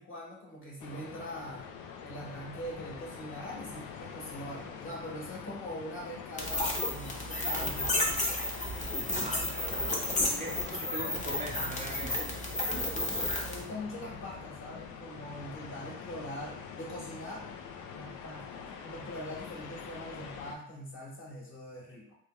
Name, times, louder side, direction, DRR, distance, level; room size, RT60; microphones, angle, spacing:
voice 1, 0.0-1.7 2.0-8.5 9.2-9.5 13.5-17.5 17.9-22.1, equal, 40° left, -3 dB, 1.3 m, -43 dB
sound 1, 0.8-20.6, left 6 dB, 85° left, 0.5 m, -44 dB
sound 2, 6.4-13.6, left 1 dB, 25° left, 0.8 m, -32 dB
voice 2, 9.2-12.3 12.6-12.7, right 1 dB, 25° right, -1 dB, 0.5 m, -42 dB
3.3 x 2.2 x 3.0 m, 0.69 s
cardioid pair, 90°, 30 cm